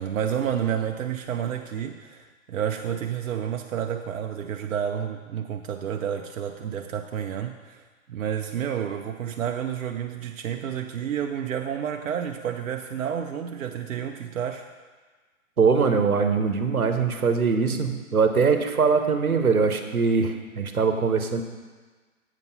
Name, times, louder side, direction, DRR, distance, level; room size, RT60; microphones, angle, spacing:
voice 1, 0.0-7.8 8.1-14.7, right 9 dB, 65° right, 4 dB, 0.6 m, -30 dB
voice 2, 15.6-21.4, right 5 dB, 85° right, 6 dB, 1.0 m, -22 dB
8.2 x 5.3 x 5.4 m, 1.4 s
figure-of-eight pair, 120°, 42 cm